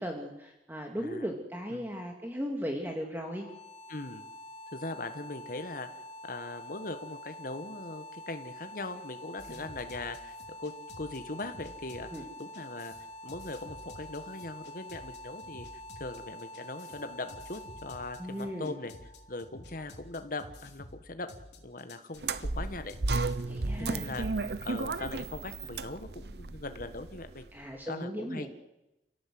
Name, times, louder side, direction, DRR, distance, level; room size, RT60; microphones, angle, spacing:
voice 1, 0.0-3.5 9.5-9.6 12.1-12.3 18.2-18.7 23.4-24.1 27.5-28.5, equal, 10° right, 1 dB, 2.4 m, -37 dB
sound 1, 3.3-20.3, left 1 dB, 35° left, 1.6 m, -47 dB
voice 2, 3.9-4.2 4.7-5.9 6.3-12.1 12.4-12.9 13.2-18.9 19.3-21.3 21.6-22.9 23.4-24.3 24.6-27.5 27.9-28.5, left 2 dB, 50° left, 8 dB, 1.6 m, -40 dB
sound 2, 9.4-24.3, left 1 dB, 75° left, 3.7 m, -51 dB
sound 3, 22.2-27.4, right 3 dB, 65° right, 0.9 m, -34 dB
29.5 x 17.5 x 7.9 m, 0.96 s
head